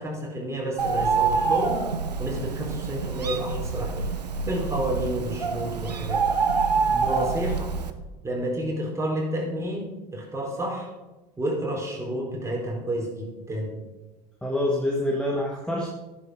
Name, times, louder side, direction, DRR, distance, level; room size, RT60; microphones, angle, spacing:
voice 1, 0.0-1.8 2.2-4.1 4.5-6.3 7.0-7.7 8.2-10.9 11.4-13.8, right 1 dB, 15° right, -1 dB, 4.4 m, -30 dB
Bird, 0.8-7.9, right 5 dB, 80° right, 1.0 m, -26 dB
voice 2, 6.9-7.2 14.4-15.9, left 1 dB, 5° left, 0 dB, 1.8 m, -27 dB
13.5 x 11.0 x 5.0 m, 1.1 s
figure-of-eight pair, 70°, 21 cm